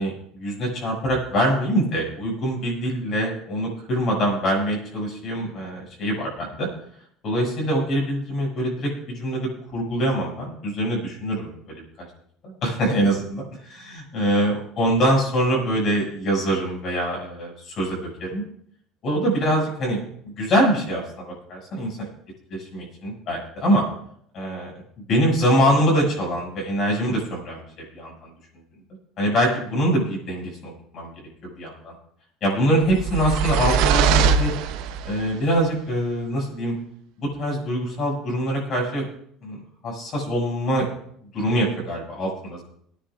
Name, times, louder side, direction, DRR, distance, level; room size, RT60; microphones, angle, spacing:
voice 1, 0.0-6.7 7.2-11.8 12.4-18.4 19.0-20.0 20.4-22.1 22.5-23.8 24.3-24.7 25.1-27.6 27.9-28.3 29.2-31.1 31.4-31.9 32.4-34.5 35.0-36.7 37.2-39.0 39.4-40.9 41.3-42.6, equal, 40° left, -1 dB, 6.7 m, -24 dB
sound 1, 32.8-35.2, right 6 dB, 70° right, 0.9 m, -21 dB
25.0 x 10.0 x 2.5 m, 0.68 s
cardioid pair, 165°, 0 cm